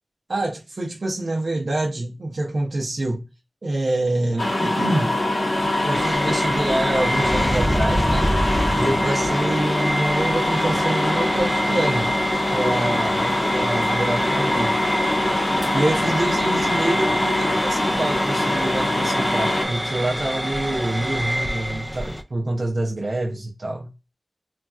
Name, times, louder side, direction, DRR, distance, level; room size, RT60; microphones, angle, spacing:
voice 1, 0.3-3.3 3.6-5.2 5.8-8.4 8.8-12.1 12.5-14.8 15.7-23.9, right 2 dB, 70° right, 0.5 m, -26 dB
sound 1, 4.4-19.6, left 1 dB, 85° left, 1.6 m, -23 dB
sound 2, 5.9-22.2, equal, ahead, 0.4 m, -26 dB
3.2 x 2.3 x 2.3 m
wide cardioid pair, 50°, 0 cm